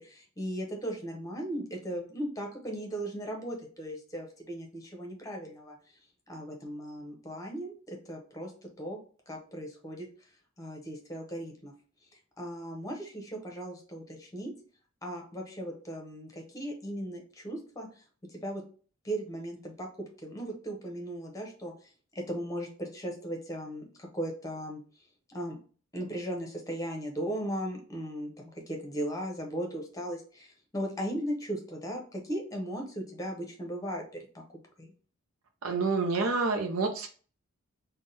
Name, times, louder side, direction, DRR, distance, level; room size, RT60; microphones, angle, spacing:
voice 1, 0.0-5.8 6.3-8.5 8.8-9.0 9.3-10.1 10.6-11.7 12.4-14.5 15.0-17.9 18.3-18.6 19.0-19.9 20.2-21.7 22.1-24.8 25.3-25.6 25.9-34.0 34.8-34.9, right 1 dB, 15° left, 2 dB, 0.9 m, -37 dB
voice 2, 35.6-37.1, right 4 dB, 85° right, 3 dB, 0.6 m, -28 dB
3.5 x 2.2 x 4.0 m, 0.40 s
head